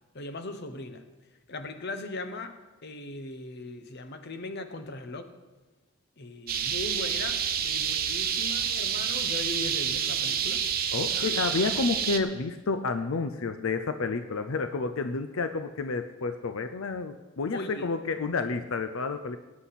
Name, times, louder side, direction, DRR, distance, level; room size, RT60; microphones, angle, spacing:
voice 1, 0.1-1.0 1.5-5.3 6.2-10.6 11.1-11.3 17.5-17.9, left 2 dB, 55° left, 8 dB, 1.1 m, -39 dB
sound 1, 6.5-12.2, right 8 dB, 45° right, 0.9 m, -28 dB
voice 2, 10.9-19.4, left 4 dB, 85° left, 9 dB, 0.6 m, -30 dB
18.5 x 9.6 x 4.2 m, 1.2 s
head